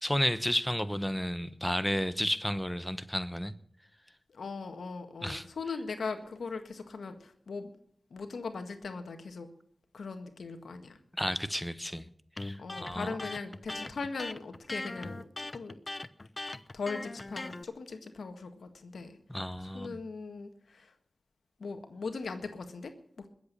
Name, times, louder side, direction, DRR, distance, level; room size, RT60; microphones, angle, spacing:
voice 1, 0.0-3.5 5.2-5.4 11.2-12.1 12.4-13.1 19.3-20.0, equal, 5° left, 1.0 m, -32 dB
voice 2, 4.3-7.7 8.1-9.5 9.9-11.0 12.6-15.8 16.7-19.2 19.7-20.9 21.6-23.3, left 4 dB, 90° left, 1.7 m, -39 dB
Electric guitar, 12.4-17.6, left 2 dB, 35° left, 0.9 m, -40 dB
21.0 x 8.2 x 6.9 m
cardioid pair, 50°, 0 cm